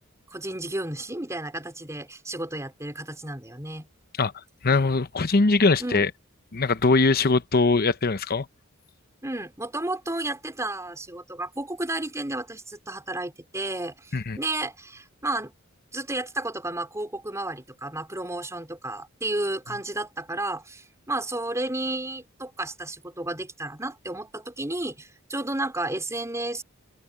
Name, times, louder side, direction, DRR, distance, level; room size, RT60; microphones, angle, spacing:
voice 1, 0.3-3.9 5.8-6.1 9.2-15.5 15.9-26.6, right 2 dB, 15° right, 4.7 m, -32 dB
voice 2, 4.6-6.1 6.5-8.5 14.1-14.4, left 3 dB, 45° left, 0.9 m, -21 dB
open air
head